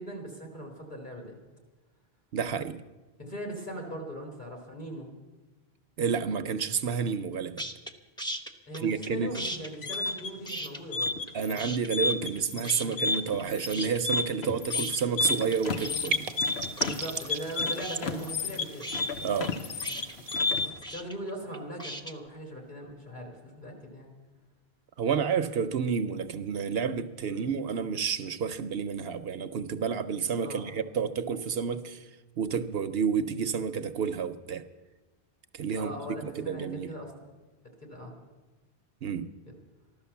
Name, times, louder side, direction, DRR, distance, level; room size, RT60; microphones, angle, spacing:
voice 1, 0.0-1.4 3.2-5.1 8.7-11.2 12.5-13.1 16.8-18.9 20.6-24.1 27.3-27.4 30.4-30.7 35.7-37.1 37.8-38.1 39.5-39.6, equal, 45° left, 1 dB, 3.6 m, -40 dB
voice 2, 2.3-2.8 6.0-7.6 8.8-9.3 11.3-16.3 19.2-19.5 25.0-32.0 32.4-34.6 35.5-36.0 36.2-36.9 39.0-39.3, right 6 dB, 70° right, 11 dB, 0.9 m, -30 dB
sound 1, 7.6-7.9 8.2-9.1 9.3-11.3 11.6-12.4 12.6-13.4 13.7-22.1, right 1 dB, 5° left, 0.8 m, -38 dB
sound 2, 9.6-20.9, left 4 dB, 75° left, 1.1 m, -31 dB
sound 3, 15.2-20.4, right 6 dB, 45° right, 0.6 m, -39 dB
14.5 x 12.0 x 7.1 m, 1.2 s
omnidirectional pair, 1.1 m